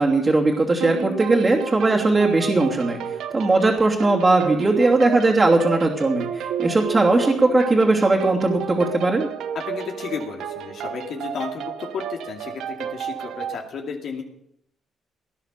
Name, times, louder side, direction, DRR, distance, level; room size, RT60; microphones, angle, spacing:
voice 1, 0.0-3.0 3.3-9.3, right 2 dB, 30° right, -3 dB, 2.8 m, -19 dB
sound 1, 0.8-13.6, right 9 dB, 80° right, 1.1 m, -32 dB
voice 2, 9.5-14.2, left 5 dB, 65° left, 1 dB, 2.5 m, -33 dB
18.5 x 10.5 x 6.8 m, 0.76 s
cardioid pair, 90°, 0 cm